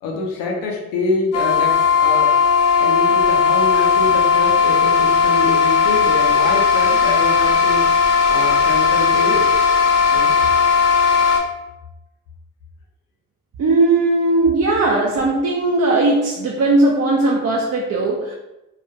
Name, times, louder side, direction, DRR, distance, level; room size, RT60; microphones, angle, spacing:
voice 1, 0.0-2.4 2.8-9.6 10.1-10.3, left 3 dB, 90° left, 0 dB, 0.6 m, -25 dB
sound 1, 1.3-11.4, left 6 dB, 50° left, 0.7 m, -16 dB
voice 2, 13.6-18.3, right 2 dB, 50° right, -2 dB, 0.5 m, -18 dB
2.3 x 2.2 x 2.7 m, 0.95 s
supercardioid pair, 45°, 33 cm